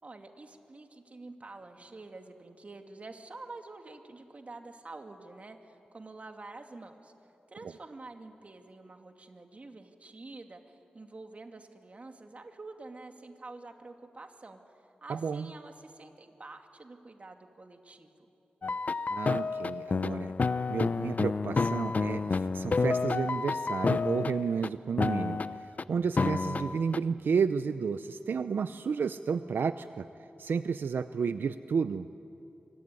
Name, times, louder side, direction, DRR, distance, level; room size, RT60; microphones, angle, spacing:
voice 1, 0.0-7.1 7.5-18.3, right 3 dB, 40° right, 4 dB, 2.4 m, -48 dB
voice 2, 15.1-15.5 19.1-20.3 20.7-25.4 25.9-30.1 30.4-32.1, right 6 dB, 85° right, 11 dB, 0.6 m, -31 dB
sound 1, 18.6-24.7 25.0-25.8 26.2-27.0, left 4 dB, 50° left, 0.6 m, -30 dB
24.5 x 24.5 x 9.7 m, 2.8 s
wide cardioid pair, 85°, 3 cm